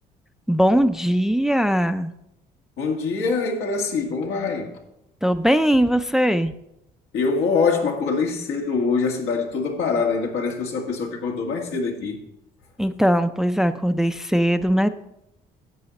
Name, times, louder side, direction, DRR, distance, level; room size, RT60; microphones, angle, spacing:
voice 1, 0.5-2.1 5.2-6.5 12.8-14.9, equal, 5° right, 0.4 m, -20 dB
voice 2, 2.8-4.8 7.1-12.2, left 4 dB, 85° left, 2.0 m, -24 dB
10.5 x 7.7 x 4.1 m
cardioid pair, 110°, 17 cm